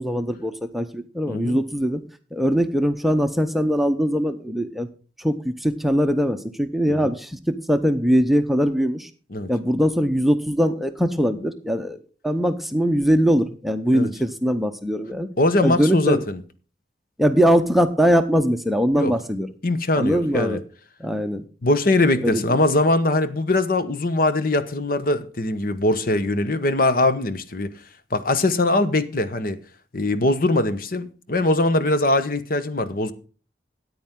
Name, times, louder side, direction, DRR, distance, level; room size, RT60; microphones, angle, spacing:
voice 1, 0.0-2.0 2.3-4.9 5.2-9.1 9.5-12.0 12.2-15.3 15.6-16.2 17.2-19.5 20.0-20.6 21.0-21.4 22.2-22.4, equal, ahead, 0.7 m, -21 dB
voice 2, 1.3-1.6 6.9-7.1 9.3-9.5 13.9-14.1 15.4-16.4 19.0-19.1 19.6-20.6 21.6-27.7 28.1-29.6 29.9-33.1, left 2 dB, 55° left, 1.0 m, -21 dB
13.5 x 9.4 x 3.7 m
head